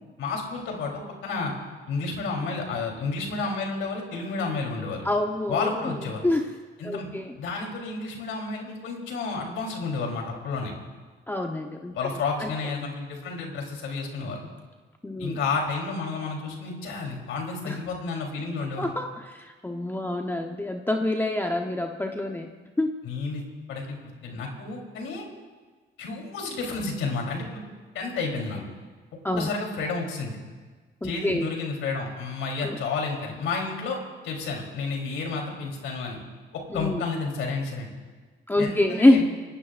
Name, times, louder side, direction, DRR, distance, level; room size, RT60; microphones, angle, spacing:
voice 1, 0.2-1.5 1.9-5.1 5.5-6.3 6.8-7.1 7.4-10.7 11.9-14.4 15.2-18.9 23.0-23.4 23.7-25.2 26.0-27.6 27.9-28.6 29.4-30.4 31.0-36.2 36.5-37.9 38.6-39.2, left 4 dB, 85° left, 0 dB, 3.5 m, -31 dB
voice 2, 5.0-5.7 6.2-6.5 6.8-7.3 11.3-11.9 12.4-12.5 15.0-15.4 17.6-17.8 18.8-22.5 22.8-22.9 29.2-29.5 31.0-31.5 32.6-32.8 36.7-37.0 38.5-39.2, left 1 dB, 10° left, 3 dB, 1.0 m, -25 dB
25.5 x 18.0 x 2.5 m, 1.4 s
cardioid pair, 90°, 20 cm